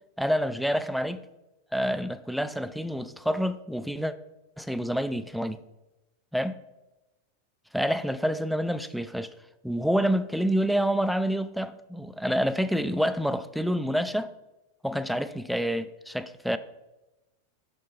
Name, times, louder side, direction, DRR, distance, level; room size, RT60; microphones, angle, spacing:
voice 1, 0.2-1.2 1.7-4.1 4.6-5.6 6.3-6.6 7.7-9.3 9.6-14.3 14.8-16.6, equal, ahead, 0.3 m, -27 dB
6.5 x 6.4 x 3.8 m
figure-of-eight pair, 90°, 0 cm